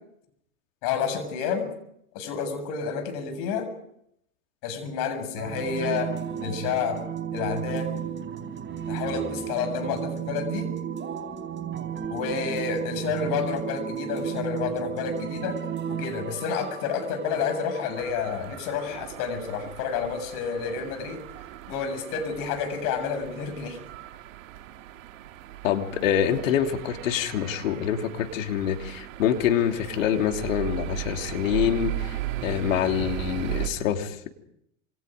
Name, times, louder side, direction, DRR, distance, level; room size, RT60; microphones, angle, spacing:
voice 1, 0.8-1.7 2.1-3.7 4.6-7.0 7.3-7.9 8.9-10.7 12.1-21.2 21.7-23.8, left 6 dB, 55° left, 9 dB, 7.6 m, -30 dB
sound 1, 5.4-18.0, right 9 dB, 30° right, 4.4 m, -33 dB
sound 2, 18.0-33.7, right 14 dB, 70° right, 2.6 m, -37 dB
voice 2, 25.6-34.3, left 9 dB, 70° left, 5 dB, 3.1 m, -26 dB
27.5 x 27.0 x 5.3 m, 0.75 s
hypercardioid pair, 90°, 40 cm